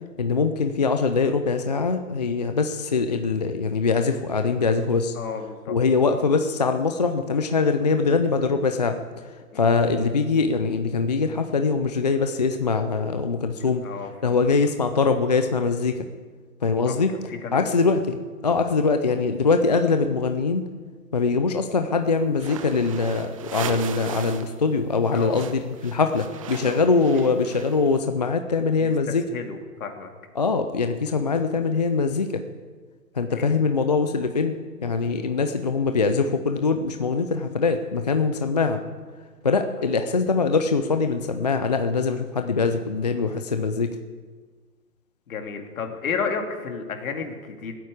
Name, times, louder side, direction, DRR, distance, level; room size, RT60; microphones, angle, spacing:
voice 1, 0.2-5.1 5.7-9.0 9.5-13.8 14.2-16.1 16.6-17.1 17.5-18.2 18.4-20.6 21.1-29.2 30.4-32.4 33.2-34.6 34.8-38.8 39.4-44.0, left 4 dB, 30° left, 7 dB, 0.4 m, -23 dB
voice 2, 5.1-5.8 9.5-9.7 13.6-14.4 16.9-17.0 17.3-17.8 25.1-25.4 26.6-26.8 28.8-30.1 33.2-33.5 45.3-47.7, left 5 dB, 60° left, 4 dB, 2.5 m, -32 dB
sound 1, 22.3-24.6 24.8-28.0, right 7 dB, 20° right, 0.5 m, -37 dB
15.5 x 9.0 x 8.4 m, 1.5 s
hypercardioid pair, 145°, 48 cm